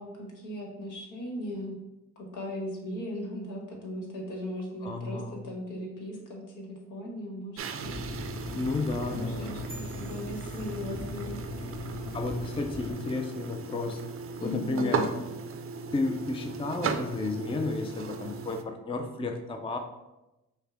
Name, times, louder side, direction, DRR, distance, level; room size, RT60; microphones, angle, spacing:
voice 1, 0.0-1.8 2.2-8.3 9.1-11.4 14.4-15.0, left 1 dB, 75° left, -1 dB, 1.3 m, -38 dB
voice 2, 4.8-5.4 8.5-9.6 12.1-14.0 14.4-15.1 15.9-19.8, left 3 dB, 15° left, 5 dB, 0.4 m, -32 dB
sound 1, 7.6-18.6, right 5 dB, 45° right, 0.4 m, -37 dB
sound 2, 7.8-12.9, left 3 dB, 50° left, 0.8 m, -40 dB
sound 3, 9.7-11.4, right 1 dB, ahead, 0.9 m, -51 dB
5.5 x 2.2 x 3.5 m, 0.99 s
supercardioid pair, 60°, 31 cm